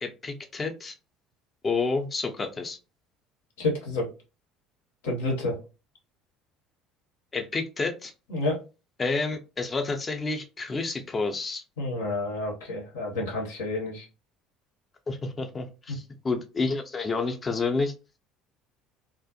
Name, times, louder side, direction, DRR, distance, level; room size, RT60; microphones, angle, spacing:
voice 1, 0.0-0.9 1.6-2.8 7.3-8.1 9.0-11.6 15.1-17.9, left 3 dB, 30° left, 5 dB, 0.5 m, -29 dB
voice 2, 3.6-4.1 5.0-5.6 8.3-8.6 11.8-14.1 15.9-16.0, left 2 dB, 80° left, 0 dB, 0.9 m, -29 dB
2.4 x 2.0 x 2.7 m, 0.31 s
hypercardioid pair, 65°, 0 cm